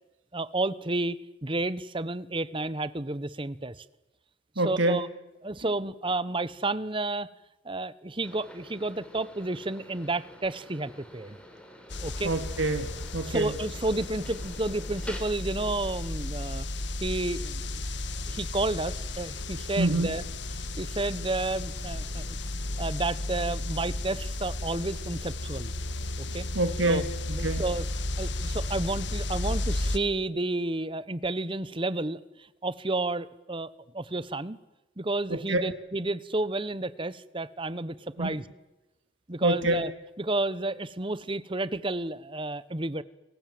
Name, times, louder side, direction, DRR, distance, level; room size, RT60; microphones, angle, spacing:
voice 1, 0.3-3.8 4.6-5.1 5.4-7.3 7.6-11.4 12.0-12.3 13.2-16.6 17.0-17.8 18.3-20.2 20.8-22.4 22.8-25.7 26.2-26.5 26.9-27.0 27.3-27.9 28.2-34.6 35.0-38.5 39.3-39.9 40.2-43.0, right 2 dB, 25° right, 16 dB, 1.0 m, -31 dB
voice 2, 4.6-5.0 12.2-13.5 19.8-20.2 26.5-27.1 27.4-27.6 35.3-35.7 38.2-38.4 39.4-39.8, right 2 dB, 80° right, 7 dB, 2.4 m, -26 dB
sound 1, 8.2-15.2, equal, 5° left, 4.3 m, -48 dB
sound 2, 11.9-30.0, left 2 dB, 60° left, 1.5 m, -34 dB
29.5 x 23.0 x 7.8 m, 1.0 s
head